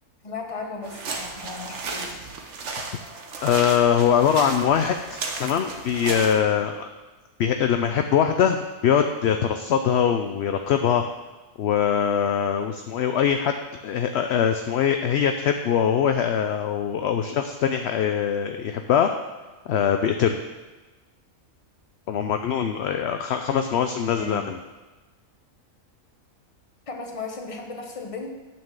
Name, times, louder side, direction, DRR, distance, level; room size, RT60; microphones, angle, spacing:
voice 1, 0.2-2.2 24.1-24.5 26.9-28.3, left 3 dB, 25° left, 3 dB, 1.0 m, -36 dB
sound 1, 0.8-6.3, right 3 dB, 60° right, 1.2 m, -34 dB
voice 2, 3.4-6.9 7.4-11.1 11.6-13.5 13.8-19.1 19.7-20.4 22.1-24.6, left 8 dB, 65° left, 6 dB, 0.7 m, -22 dB
9.3 x 4.5 x 7.3 m, 1.2 s
omnidirectional pair, 1.5 m